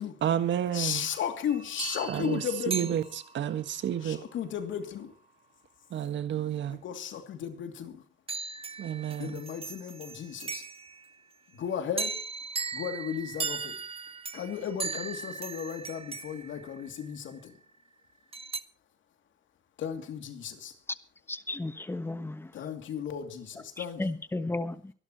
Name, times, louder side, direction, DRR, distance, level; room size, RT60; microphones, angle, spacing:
voice 1, 0.2-1.1 2.1-4.2 5.9-6.8 8.8-9.4, right 10 dB, 70° right, 1.6 m, -30 dB
voice 2, 0.7-3.0 4.0-5.1 6.7-8.0 9.2-10.6 11.6-12.2 12.7-13.7 14.3-17.5 19.8-20.7 22.5-24.0, left 8 dB, 75° left, 2.7 m, -35 dB
sound 1, 1.5-3.7 8.3-11.1 12.0-17.3 18.3-18.6, right 4 dB, 30° right, 1.1 m, -38 dB
voice 3, 21.3-22.5 23.8-24.9, left 2 dB, 10° left, 1.2 m, -34 dB
24.0 x 12.0 x 3.0 m
cardioid pair, 90°, 20 cm